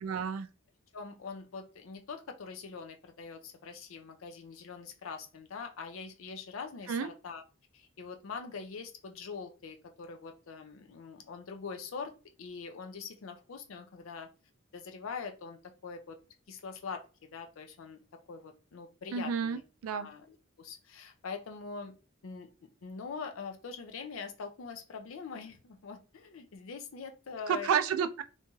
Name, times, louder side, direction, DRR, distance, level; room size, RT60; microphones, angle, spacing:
voice 1, 0.0-0.5 6.9-7.1 19.1-20.1 27.5-28.2, right 7 dB, 90° right, 0.3 m, -31 dB
voice 2, 0.9-7.4 7.7-12.1 12.4-14.3 14.7-16.2 16.5-18.0 18.3-21.9 22.2-22.5 22.8-27.7, left 5 dB, 70° left, 0.5 m, -43 dB
3.0 x 2.7 x 2.2 m
head